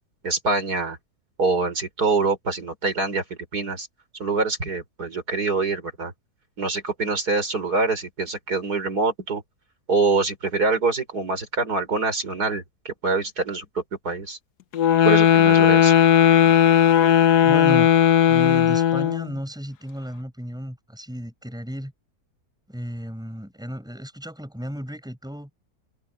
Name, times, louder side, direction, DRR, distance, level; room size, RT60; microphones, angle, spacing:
voice 1, 0.2-1.0 1.4-3.2 3.5-3.9 4.2-6.1 6.6-9.4 9.9-14.4 15.0-15.9, right 3 dB, 75° right, 5.5 m, -25 dB
sound 1, 14.7-19.3, left 9 dB, 90° left, 1.5 m, -16 dB
voice 2, 17.4-17.9 18.3-21.9 22.7-25.5, equal, ahead, 6.2 m, -33 dB
omnidirectional pair, 1.7 m